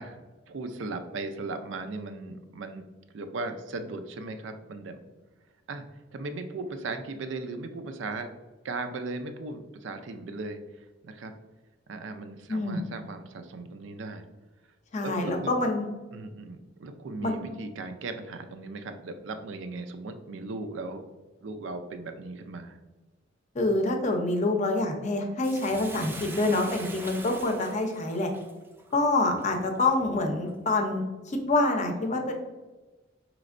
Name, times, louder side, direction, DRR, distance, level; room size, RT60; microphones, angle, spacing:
voice 1, 0.0-2.8 3.1-5.0 5.7-8.3 8.6-11.3 11.9-14.2 15.0-15.5 16.1-21.1 21.4-22.8, right 3 dB, 75° right, 8 dB, 0.4 m, -37 dB
voice 2, 14.9-15.8 17.2-17.4 23.5-28.3 28.9-32.3, left 2 dB, 40° left, 3 dB, 0.6 m, -26 dB
Bathtub (filling or washing), 25.4-29.9 30.5-30.6, right 2 dB, 10° right, 0.3 m, -43 dB
5.0 x 3.1 x 2.5 m, 1.2 s
head